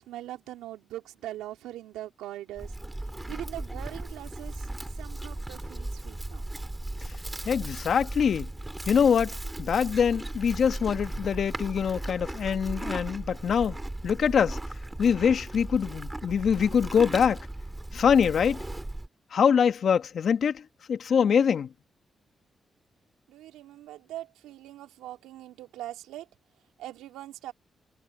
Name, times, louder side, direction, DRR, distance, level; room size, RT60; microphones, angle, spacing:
voice 1, 0.0-2.8 3.3-6.4 23.3-26.3 26.8-27.5, right 14 dB, 90° right, 3.3 m, -41 dB
Livestock farm animals working animals, 2.6-19.1, right 1 dB, 15° right, 3.0 m, -37 dB
voice 2, 7.4-8.5 8.9-13.8 14.0-14.6 15.0-17.4 17.9-18.6 19.3-20.6 20.9-21.7, left 7 dB, 65° left, 1.5 m, -24 dB
supercardioid pair, 45°, 0 cm